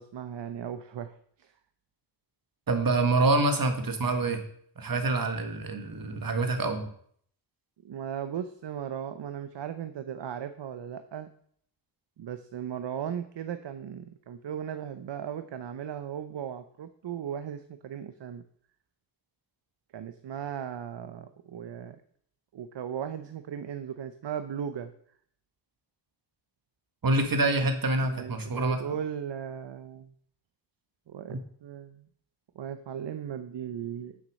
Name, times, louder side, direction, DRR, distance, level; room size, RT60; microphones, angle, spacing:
voice 1, 0.0-1.5 7.8-11.3 12.2-18.4 19.9-22.0 22.5-24.9 28.0-30.1 31.1-32.1 32.5-34.2, right 8 dB, 75° right, 10 dB, 0.8 m, -37 dB
voice 2, 2.7-4.4 4.8-6.9 27.0-28.8 31.3-31.4, right 2 dB, 50° right, 6 dB, 1.8 m, -26 dB
9.3 x 7.4 x 6.4 m, 0.62 s
wide cardioid pair, 120°, 43 cm